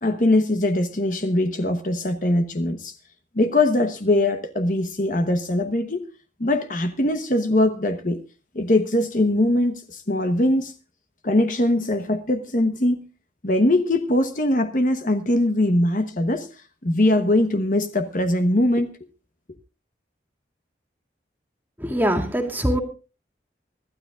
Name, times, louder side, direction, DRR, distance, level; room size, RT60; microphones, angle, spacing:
voice 1, 0.0-2.9 3.3-6.1 6.4-8.2 8.5-10.7 11.2-13.0 13.4-16.5 16.8-18.9, left 1 dB, 45° left, 1.1 m, -21 dB
voice 2, 21.8-22.8, equal, 10° right, 2.3 m, -22 dB
25.0 x 12.5 x 2.5 m
head